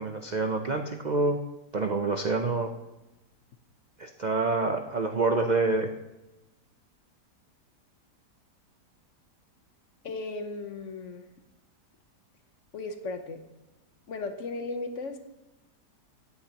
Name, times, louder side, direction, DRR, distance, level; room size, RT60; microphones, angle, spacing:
voice 1, 0.0-1.4 1.7-2.7 4.0-5.9, right 3 dB, 60° right, 4 dB, 0.4 m, -27 dB
voice 2, 10.0-11.3 12.7-13.4 14.1-15.2, left 3 dB, 50° left, 7 dB, 1.2 m, -36 dB
16.5 x 9.8 x 2.9 m, 0.99 s
omnidirectional pair, 1.8 m